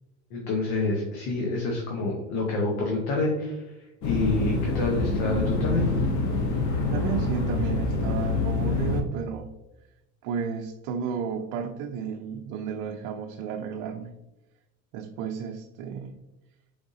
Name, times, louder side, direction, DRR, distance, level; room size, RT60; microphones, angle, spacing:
voice 1, 0.3-3.6 4.0-5.9, left 2 dB, 85° left, -1 dB, 1.0 m, -27 dB
sound 1, 4.0-9.0, left 3 dB, 60° left, 0.9 m, -26 dB
voice 2, 6.9-9.5 10.2-14.2 14.9-16.2, right 6 dB, 75° right, 3 dB, 0.5 m, -32 dB
4.7 x 3.5 x 2.7 m, 0.98 s
supercardioid pair, 110°, 33 cm